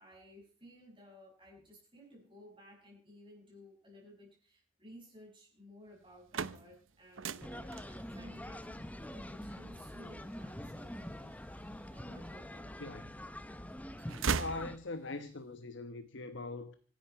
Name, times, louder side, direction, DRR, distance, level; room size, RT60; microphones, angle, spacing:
voice 1, 0.0-7.7 8.1-12.8, equal, 25° right, 6.9 m, -56 dB
sound 1, 6.0-12.0 12.5-13.4 13.7-15.3, right 5 dB, 75° right, 0.8 m, -40 dB
sound 2, 7.4-14.8, left 1 dB, 5° left, 0.8 m, -45 dB
voice 2, 12.8-13.1 14.4-16.8, left 3 dB, 65° left, 1.1 m, -42 dB
25.0 x 11.0 x 4.7 m
head